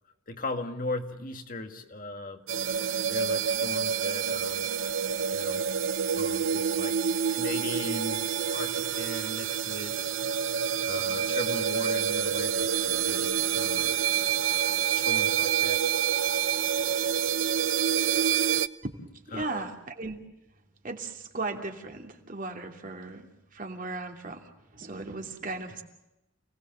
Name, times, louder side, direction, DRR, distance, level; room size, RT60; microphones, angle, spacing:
voice 1, 0.3-2.4 3.1-4.7 5.3-5.7 6.1-7.0 7.3-8.2 8.5-10.0 10.8-14.1 14.9-15.8 19.3-19.7, left 2 dB, 45° left, 6 dB, 1.9 m, -38 dB
sound 1, 2.5-18.7, right 8 dB, 75° right, 0.8 m, -27 dB
voice 2, 19.3-20.2 20.8-25.8, right 3 dB, 45° right, 3 dB, 2.9 m, -37 dB
29.0 x 19.0 x 7.4 m, 0.95 s
head